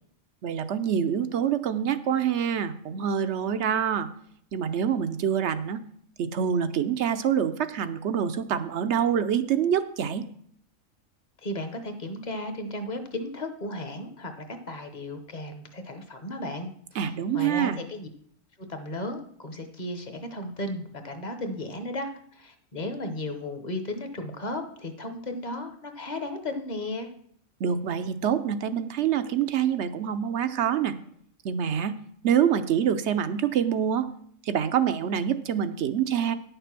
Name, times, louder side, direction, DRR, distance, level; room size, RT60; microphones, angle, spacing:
voice 1, 0.4-4.1 4.5-5.8 6.2-10.3 17.0-17.8 27.6-31.0 31.4-32.0 32.2-34.1 34.5-36.3, right 8 dB, 65° right, 11 dB, 0.9 m, -26 dB
voice 2, 11.4-17.0 17.3-18.1 18.7-27.1, left 1 dB, 35° left, 7 dB, 1.1 m, -35 dB
10.0 x 6.8 x 6.0 m, 0.65 s
omnidirectional pair, 1.4 m